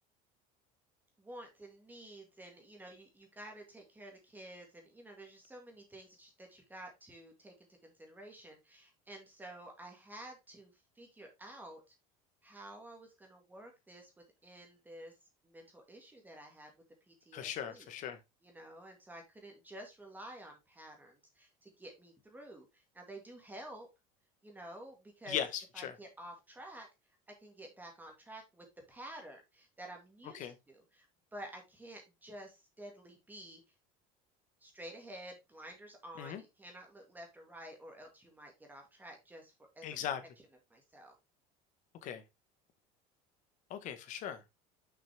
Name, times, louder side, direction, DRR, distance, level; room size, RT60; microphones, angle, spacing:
voice 1, 1.2-11.9 12.4-14.1 14.4-15.2 15.4-16.7 17.1-17.9 18.4-23.9 24.4-25.4 25.7-26.9 27.3-31.1 31.3-33.6 34.6-40.0 40.7-41.1, right 1 dB, 10° right, 1.9 m, -51 dB
voice 2, 17.3-18.2 25.3-25.9 30.3-30.5 36.2-36.4 39.8-40.2 42.0-42.2 43.7-44.4, left 9 dB, 50° left, 1.4 m, -38 dB
6.4 x 5.8 x 3.4 m
cardioid pair, 135°, 17 cm